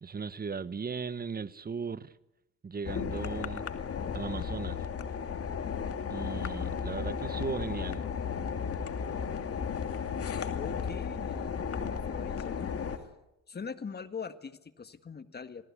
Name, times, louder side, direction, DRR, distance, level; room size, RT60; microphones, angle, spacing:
voice 1, 0.0-2.1 2.6-3.6 4.1-4.8 6.1-8.0, right 5 dB, 30° right, 1.2 m, -37 dB
sound 1, 2.8-13.0, left 6 dB, 50° left, 2.6 m, -34 dB
voice 2, 10.5-13.1 13.5-15.7, left 5 dB, 35° left, 1.8 m, -43 dB
28.5 x 19.0 x 8.3 m
cardioid pair, 90°, 30 cm